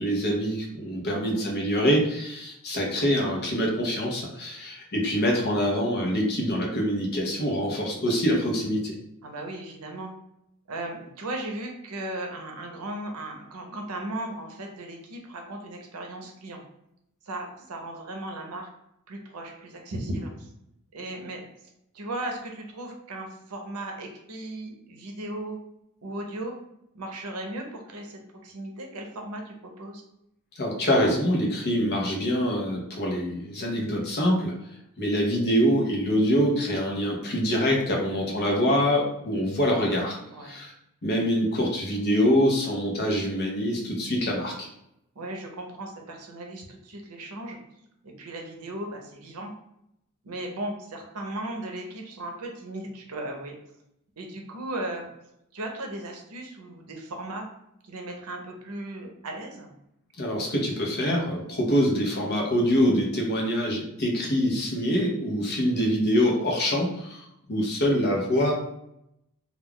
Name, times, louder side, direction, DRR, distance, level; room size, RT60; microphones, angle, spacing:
voice 1, 0.0-8.9 30.6-34.5 35.0-40.7 41.0-44.7 60.2-68.5, equal, 45° left, -1 dB, 0.7 m, -25 dB
voice 2, 1.1-1.5 9.2-10.1 10.7-16.6 17.3-18.7 19.1-20.5 20.9-21.4 21.9-25.6 26.0-26.6 26.9-30.0 37.9-38.5 40.3-40.5 45.2-47.6 48.0-49.5 50.2-53.5 54.2-55.1 55.5-57.5 57.8-59.7 65.3-65.5, right 1 dB, 75° right, 2 dB, 0.6 m, -36 dB
2.3 x 2.3 x 3.5 m, 0.79 s
head